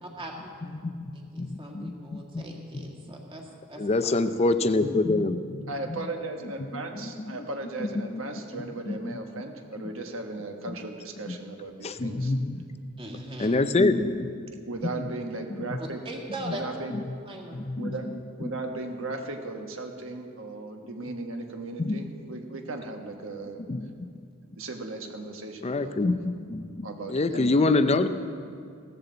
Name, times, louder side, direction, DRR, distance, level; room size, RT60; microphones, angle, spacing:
voice 1, 0.0-0.7 1.1-4.2 13.0-13.6 16.0-16.6 17.3-17.6, right 1 dB, 25° right, 0 dB, 1.8 m, -40 dB
voice 2, 0.8-2.5 3.8-5.7 6.7-7.4 7.8-8.2 8.9-9.0 11.8-12.6 13.4-14.3 17.5-17.9 18.4-18.5 21.8-22.0 23.7-23.9 25.6-26.2 26.5-28.1, left 2 dB, 30° left, 11 dB, 0.5 m, -26 dB
voice 3, 5.7-12.3 14.7-16.0 16.5-16.9 17.8-18.0 18.4-23.6 24.6-26.2 26.8-27.6, right 2 dB, 65° right, 3 dB, 1.4 m, -37 dB
16.0 x 14.0 x 4.0 m, 2.3 s
head